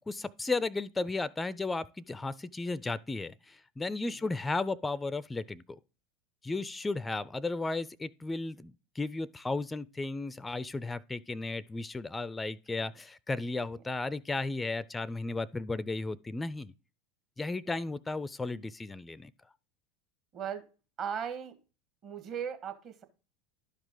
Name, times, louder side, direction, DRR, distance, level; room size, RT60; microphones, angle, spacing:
voice 1, 0.1-5.8 6.4-16.7 17.4-19.3, left 3 dB, 15° left, 0.4 m, -34 dB
voice 2, 20.3-20.6 21.0-21.6 22.0-23.0, right 8 dB, 40° right, 1.7 m, -38 dB
11.5 x 5.0 x 3.8 m
figure-of-eight pair, 80°, 0 cm